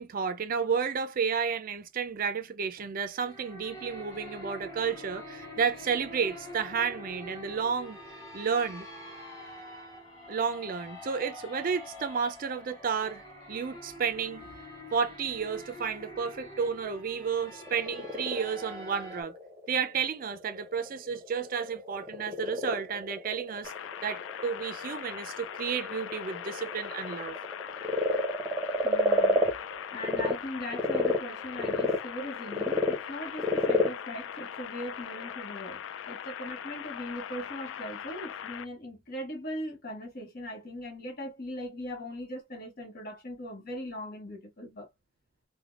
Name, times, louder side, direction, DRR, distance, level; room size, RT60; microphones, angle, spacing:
voice 1, 0.0-8.0 8.3-8.9 10.3-14.5 14.9-19.3 19.7-23.7 24.0-27.4, right 6 dB, 45° right, 0.4 m, -32 dB
sound 1, 3.1-19.2, left 1 dB, 20° left, 1.3 m, -45 dB
Frog, 17.5-30.3 30.7-35.3, left 1 dB, 15° right, 0.8 m, -31 dB
sound 2, 23.6-38.6, left 9 dB, 75° left, 0.3 m, -41 dB
voice 2, 28.8-29.5 29.9-44.9, equal, 50° left, 1.0 m, -40 dB
3.3 x 2.1 x 2.3 m
head